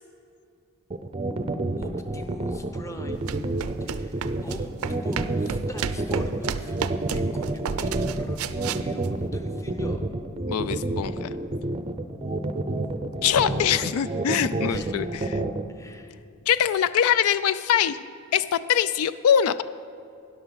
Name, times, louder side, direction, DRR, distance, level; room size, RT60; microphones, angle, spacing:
sound 1, 0.9-15.6, right 2 dB, 25° right, 0.5 m, -28 dB
voice 1, 1.8-3.3 3.8-6.9 7.1-10.0 14.7-15.0 15.7-16.1, equal, 15° left, 5 dB, 0.8 m, -42 dB
sound 2, 3.1-9.1, right 6 dB, 80° right, 0.4 m, -32 dB
voice 2, 10.5-11.3 13.2-15.4 16.5-18.0 18.3-19.6, left 9 dB, 85° left, 15 dB, 0.3 m, -23 dB
12.5 x 10.5 x 4.0 m, 2.6 s
head